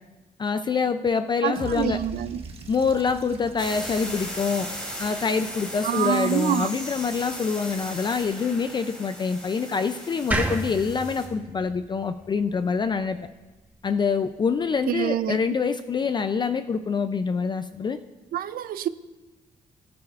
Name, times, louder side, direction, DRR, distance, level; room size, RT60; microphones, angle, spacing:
voice 1, 0.4-2.0 2.7-4.7 5.0-13.2 13.8-18.0, left 5 dB, 30° left, 0.4 m, -25 dB
voice 2, 1.4-2.4 5.8-6.7 14.9-15.4 18.3-18.9, right 10 dB, 80° right, 0.5 m, -26 dB
sound 1, 1.6-5.7, right 4 dB, 40° right, 1.3 m, -42 dB
sound 2, 3.6-11.3, equal, 5° left, 3.0 m, -37 dB
sound 3, 10.3-13.5, right 1 dB, 10° right, 1.0 m, -31 dB
21.5 x 9.5 x 2.4 m
cardioid pair, 135°, 15 cm